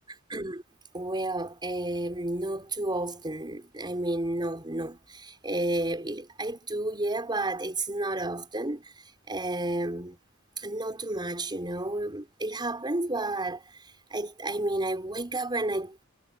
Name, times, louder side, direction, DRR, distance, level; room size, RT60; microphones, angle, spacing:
voice 1, 0.3-0.6 0.9-8.9 9.3-10.2 10.6-13.6 14.1-16.0, right 2 dB, 20° right, 4.6 m, -31 dB
head